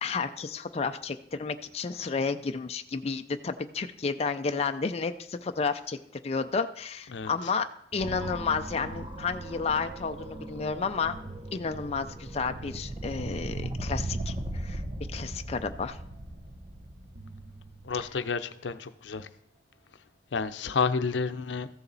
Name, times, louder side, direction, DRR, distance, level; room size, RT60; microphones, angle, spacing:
voice 1, 0.0-6.0 6.2-11.2 11.5-14.8 15.1-16.0, left 5 dB, 35° left, 7 dB, 0.4 m, -31 dB
sound 1, 7.8-10.1 10.8-13.2 14.2-16.6 17.1-19.7, right 3 dB, 60° right, 0.8 m, -53 dB
sound 2, 8.0-18.1, right 1 dB, 25° right, 0.7 m, -38 dB
voice 2, 17.8-19.3 20.3-21.7, left 5 dB, 90° left, 10 dB, 0.6 m, -30 dB
14.0 x 7.0 x 4.0 m, 0.73 s
head